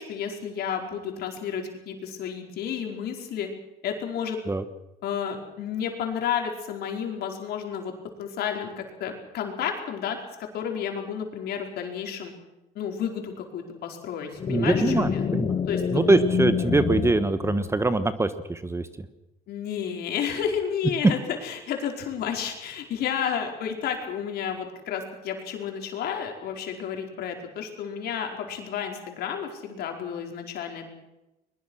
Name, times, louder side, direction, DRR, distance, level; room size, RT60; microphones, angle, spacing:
voice 1, 0.0-3.5 3.8-4.4 5.0-7.9 8.2-12.3 12.7-15.3 15.7-16.0 19.5-30.9, left 8 dB, 70° left, 3 dB, 4.7 m, -31 dB
sound 1, 14.4-18.1, left 7 dB, 35° left, 0.8 m, -27 dB
voice 2, 14.5-15.6 15.9-19.1, right 2 dB, 15° right, 12 dB, 1.3 m, -23 dB
21.5 x 21.5 x 6.4 m, 0.96 s
cardioid pair, 110°, 17 cm